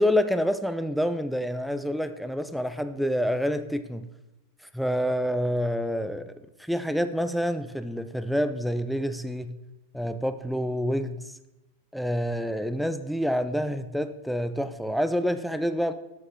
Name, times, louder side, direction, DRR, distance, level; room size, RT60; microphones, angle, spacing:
voice 1, 0.0-4.1 4.7-6.3 6.6-9.6 9.9-11.3 11.9-15.9, equal, ahead, 0.4 m, -27 dB
6.9 x 6.2 x 3.7 m
figure-of-eight pair, 90°, 0 cm